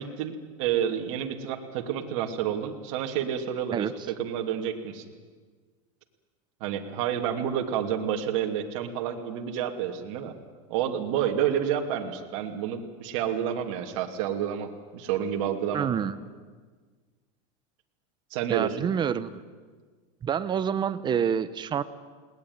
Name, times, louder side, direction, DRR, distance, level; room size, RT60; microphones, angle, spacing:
voice 1, 0.0-5.0 6.6-10.3 10.7-15.9 18.3-18.8, right 9 dB, 60° right, 4 dB, 2.6 m, -29 dB
voice 2, 15.7-16.2 18.5-19.4 20.2-21.8, right 8 dB, 25° right, 14 dB, 1.0 m, -27 dB
20.5 x 18.5 x 9.6 m, 1.5 s
supercardioid pair, 130°, 17 cm